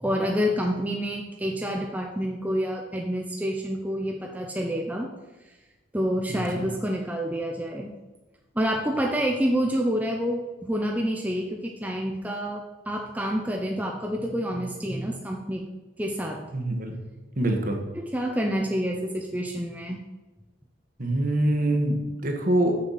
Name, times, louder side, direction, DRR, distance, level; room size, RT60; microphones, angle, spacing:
voice 1, 0.0-5.1 5.9-7.9 8.5-15.7 16.0-16.4 17.9-20.0, equal, 10° right, 1 dB, 0.6 m, -28 dB
voice 2, 6.3-6.7 16.5-16.9 17.4-17.8 21.0-22.8, right 1 dB, 45° right, 3 dB, 1.3 m, -25 dB
6.8 x 6.6 x 5.6 m, 1.1 s
head